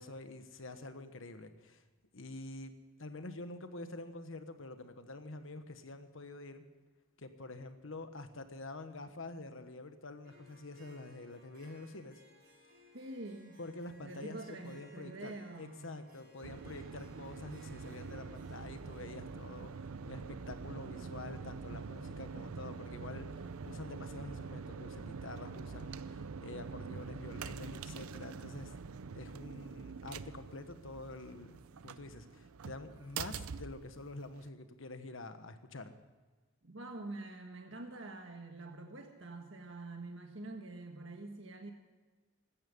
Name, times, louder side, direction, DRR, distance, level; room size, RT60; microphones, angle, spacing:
voice 1, 0.0-1.8 2.1-2.7 3.0-6.6 7.2-12.2 13.6-28.7 29.1-31.6 31.8-35.9, left 2 dB, 65° left, 9 dB, 1.3 m, -47 dB
Harp, 10.2-19.3, equal, 45° right, 6.2 m, -62 dB
voice 2, 12.9-13.6 14.0-15.9 36.6-41.7, right 2 dB, 60° right, 4 dB, 1.5 m, -46 dB
sound 1, 16.4-34.5, right 5 dB, 90° right, 0.5 m, -45 dB
16.5 x 13.0 x 5.3 m, 1.3 s
head